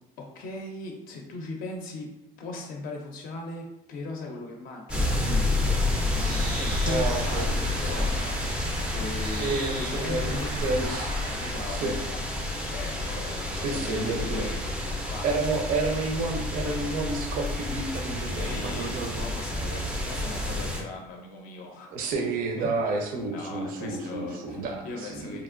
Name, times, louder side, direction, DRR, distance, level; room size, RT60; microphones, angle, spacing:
voice 1, 0.2-2.1 2.4-12.2 12.7-15.5 18.3-21.9 22.6-22.7 23.2-25.4, left 3 dB, 60° left, 1 dB, 0.4 m, -39 dB
sound 1, 4.9-20.8, left 1 dB, 5° right, 0.3 m, -30 dB
Bird, 6.1-11.5, equal, 80° right, 0.8 m, -35 dB
voice 2, 6.8-7.5 9.4-11.1 11.7-11.9 13.6-14.5 15.2-19.3 21.9-25.4, right 3 dB, 60° right, 2 dB, 0.5 m, -30 dB
2.9 x 2.4 x 2.4 m, 0.92 s
cardioid pair, 160°, 16 cm